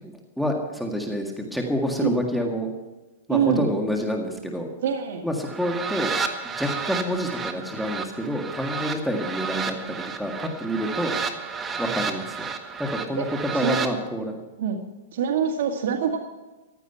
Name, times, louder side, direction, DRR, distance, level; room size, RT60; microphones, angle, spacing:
voice 1, 0.0-2.7 3.3-4.7 5.2-6.1 6.4-11.2 11.8-12.5 12.8-14.4, equal, ahead, 1 dB, 1.8 m, -28 dB
voice 2, 3.3-3.7 4.8-5.2 13.2-13.3 13.5-13.9 14.6-14.8 15.1-16.2, right 7 dB, 65° right, 2 dB, 2.1 m, -24 dB
sound 1, 5.4-13.9, right 5 dB, 15° right, 1.5 m, -31 dB
15.5 x 12.0 x 5.7 m, 1.1 s
hypercardioid pair, 150°, 0 cm